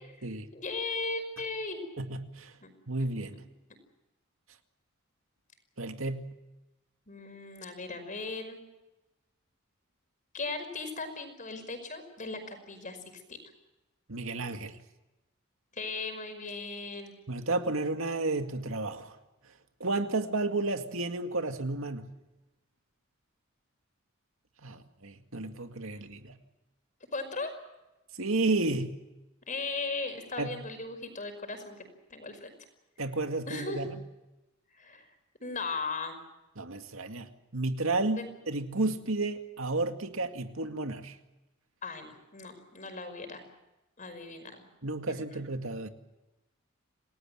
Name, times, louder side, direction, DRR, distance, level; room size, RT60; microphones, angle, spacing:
voice 1, 0.5-1.8 2.6-2.7 7.1-8.6 10.3-13.0 13.3-13.4 15.7-17.1 27.1-27.5 29.5-31.8 32.1-32.5 33.5-33.8 34.8-35.1 35.4-36.2 38.2-38.3 41.8-43.4 44.0-44.6 45.1-45.4, left 3 dB, 40° left, 8 dB, 5.3 m, -37 dB
voice 2, 2.0-2.5 2.9-3.4 5.8-6.3 14.1-14.8 17.3-19.2 19.8-22.1 24.6-26.4 28.2-29.0 30.4-30.5 33.0-33.9 36.6-41.2 44.8-45.9, right 2 dB, 75° right, 7 dB, 2.2 m, -32 dB
29.0 x 19.0 x 7.7 m, 1.0 s
head